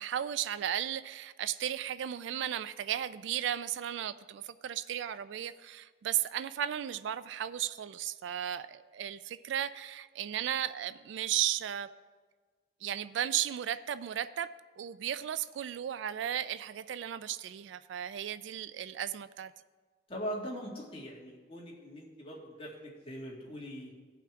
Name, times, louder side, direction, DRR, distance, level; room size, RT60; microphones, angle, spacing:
voice 1, 0.0-11.9 12.8-14.5 14.8-19.5, right 10 dB, 70° right, 15 dB, 0.3 m, -35 dB
voice 2, 20.1-23.9, equal, 30° left, -3 dB, 1.9 m, -41 dB
16.5 x 5.8 x 3.6 m, 1.5 s
head